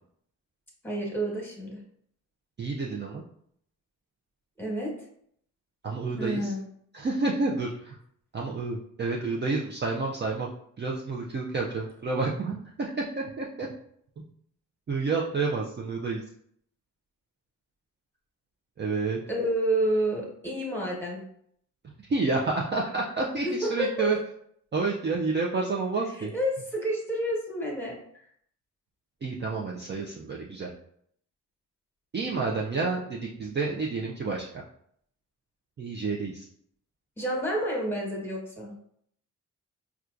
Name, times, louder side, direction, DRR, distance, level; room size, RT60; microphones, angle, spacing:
voice 1, 0.8-1.8 4.6-5.0 6.2-6.6 19.3-21.2 23.4-23.9 26.2-27.9 37.2-38.7, right 1 dB, 5° left, -2 dB, 1.2 m, -29 dB
voice 2, 2.6-3.2 5.8-6.5 6.9-8.0 8.3-10.5 10.8-13.7 14.9-16.2 18.8-19.2 21.8-24.2 24.7-26.3 29.2-30.7 32.1-34.6 35.8-36.5, right 3 dB, 30° right, -2 dB, 0.4 m, -29 dB
4.3 x 2.3 x 2.4 m, 0.67 s
cardioid pair, 80°, 34 cm